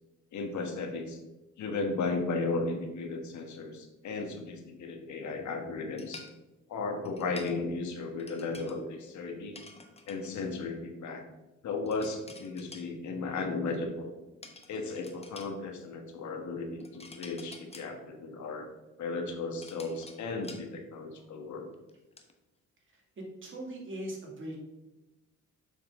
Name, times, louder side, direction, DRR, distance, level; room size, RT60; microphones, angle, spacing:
voice 1, 0.3-1.2 1.6-6.2 6.7-9.6 10.1-11.2 11.6-14.1 14.7-18.7 19.0-21.7, left 3 dB, 70° left, 4 dB, 1.4 m, -35 dB
sound 1, 6.0-6.3 7.0-7.6 8.2-8.8 9.5-10.4 11.9-12.9 14.4-15.5 16.8-17.9 19.2-20.7 21.2-21.3 21.7-22.3, left 3 dB, 20° left, 1.0 m, -50 dB
voice 2, 22.9-24.6, right 1 dB, 40° right, -1 dB, 2.4 m, -40 dB
7.1 x 5.7 x 3.7 m, 1.0 s
cardioid pair, 90°, 30 cm